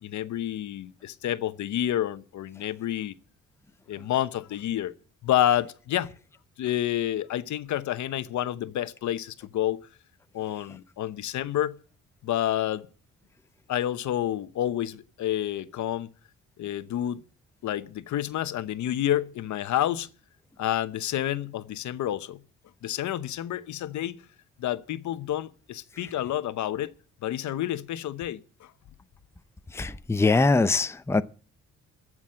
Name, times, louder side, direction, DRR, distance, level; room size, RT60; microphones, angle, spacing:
voice 1, 0.0-3.1 3.9-4.9 5.2-6.1 6.6-9.9 10.3-11.8 12.2-12.9 13.7-16.1 16.6-17.2 17.6-20.1 20.6-22.4 22.8-24.2 24.6-26.9 27.2-28.7, left 12 dB, 70° left, 0.9 m, -29 dB
voice 2, 29.7-31.2, left 3 dB, 10° left, 0.6 m, -22 dB
14.5 x 6.2 x 8.6 m
cardioid pair, 90°, 30 cm